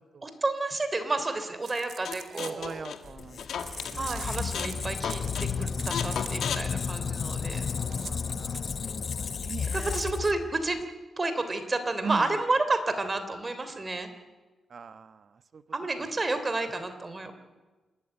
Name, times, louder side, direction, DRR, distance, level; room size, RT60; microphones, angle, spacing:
voice 1, 0.2-2.9 3.9-7.7 9.7-10.8 11.2-14.1 15.7-17.3, right 2 dB, 30° right, 9 dB, 3.2 m, -30 dB
sound 1, 1.6-3.1 3.6-6.5 6.9-7.0 7.3-8.7, right 8 dB, 75° right, 1.4 m, -44 dB
sound 2, 2.0-4.0 4.3-4.8 5.0-5.5 5.9-7.5, left 8 dB, 80° left, 1.8 m, -35 dB
voice 2, 2.4-4.8 7.7-8.7 8.9-10.1 12.0-12.4 14.7-15.6 16.0-16.1, right 5 dB, 55° right, 13 dB, 1.1 m, -41 dB
Squeak, 3.1-10.8, left 6 dB, 55° left, 0.8 m, -33 dB
27.5 x 13.0 x 9.9 m, 1.3 s
cardioid pair, 65°, 0 cm